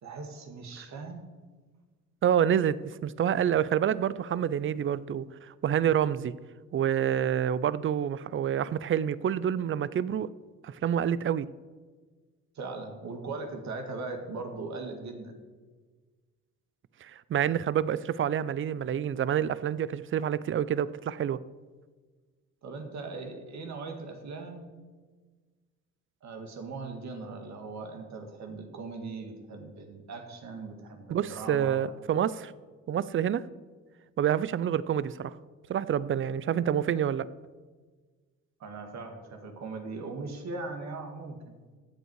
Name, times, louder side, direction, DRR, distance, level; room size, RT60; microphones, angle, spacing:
voice 1, 0.0-1.2 12.6-15.4 22.6-24.7 26.2-31.8 38.6-41.6, right 3 dB, 65° right, 4 dB, 2.0 m, -39 dB
voice 2, 2.2-5.3 5.6-6.3 6.7-10.3 10.6-11.5 17.0-21.4 31.1-32.5 32.9-33.4 34.2-35.3 35.7-37.3, right 9 dB, 40° right, 18 dB, 0.5 m, -27 dB
14.5 x 8.1 x 4.7 m, 1.4 s
cardioid pair, 90°, 30 cm